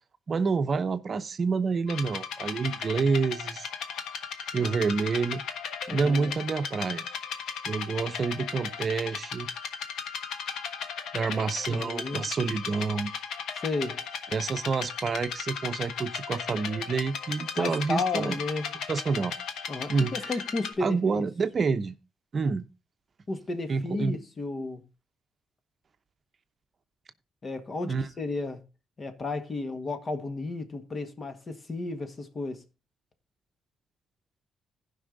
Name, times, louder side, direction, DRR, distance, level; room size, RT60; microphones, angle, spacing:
voice 1, 0.3-3.7 4.5-5.4 5.9-7.0 7.7-9.5 11.1-13.1 14.3-18.4 18.9-19.3 19.9-20.3 20.8-22.0 22.3-22.7 23.7-24.2 27.8-28.1, right 4 dB, 40° right, 0.7 m, -28 dB
sound 1, 1.9-20.7, left 6 dB, 75° left, 1.3 m, -36 dB
voice 2, 5.9-6.4 11.7-12.2 13.6-14.0 17.6-18.7 19.7-21.3 23.3-24.8 27.4-28.6 29.0-32.6, left 3 dB, 35° left, 1.7 m, -33 dB
15.0 x 5.6 x 3.9 m
cardioid pair, 90°, 0 cm